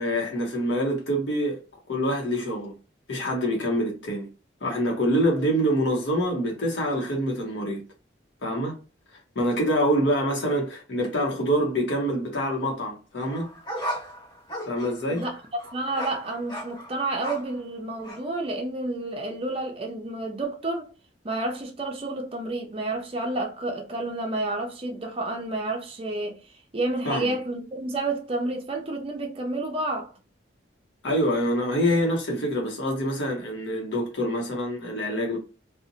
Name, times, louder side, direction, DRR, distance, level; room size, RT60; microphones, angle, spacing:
voice 1, 0.0-1.6 1.9-2.7 3.1-4.3 4.6-7.8 8.4-8.8 9.4-13.5 14.7-15.2 27.0-27.3 31.0-35.4, equal, 75° left, 0.7 m, -25 dB
sound 1, 13.2-17.6 18.0-18.2, equal, 20° left, 1.0 m, -36 dB
voice 2, 15.7-20.9 21.2-26.4 26.7-30.1, right 2 dB, 30° right, 0.5 m, -30 dB
2.6 x 2.0 x 2.7 m
head